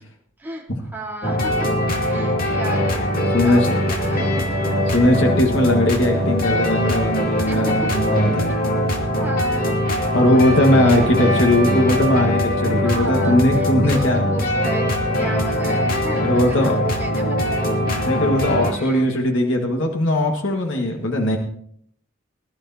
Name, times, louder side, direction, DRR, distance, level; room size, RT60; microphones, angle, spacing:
voice 1, 0.4-1.7 2.0-4.5 7.4-7.7 8.4-8.6 9.2-9.7 10.2-11.9 12.8-17.8 18.7-19.0, right 2 dB, 10° right, -4 dB, 3.7 m, -34 dB
sound 1, 1.2-18.7, left 1 dB, 45° left, 2.3 m, -21 dB
voice 2, 3.3-3.7 4.1-4.2 4.9-8.5 10.1-14.2 15.2-15.4 16.2-16.8 18.0-21.4, left 1 dB, 65° left, 1 dB, 1.7 m, -19 dB
sound 2, 3.4-9.2, right 2 dB, 20° left, 3.3 m, -42 dB
21.0 x 12.0 x 2.8 m, 0.64 s
head